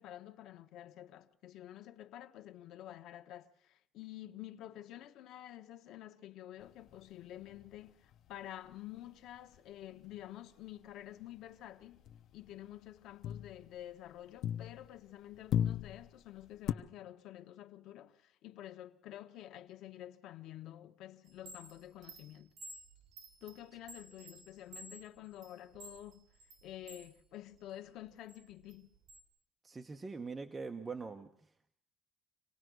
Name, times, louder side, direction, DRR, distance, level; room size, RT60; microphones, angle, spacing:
voice 1, 0.0-12.0 12.3-22.5 23.4-26.2 26.6-28.9, left 13 dB, 85° left, 1.3 m, -50 dB
sound 1, 6.6-10.3 10.6-10.9 11.2-15.1 15.3-16.7, left 10 dB, 65° left, 0.9 m, -39 dB
Chime, 21.3-27.1 27.5-29.2, right 2 dB, 50° right, 6.1 m, -53 dB
voice 2, 29.6-31.7, right 4 dB, 20° right, 1.1 m, -43 dB
26.0 x 18.5 x 6.3 m
cardioid pair, 155°, 0 cm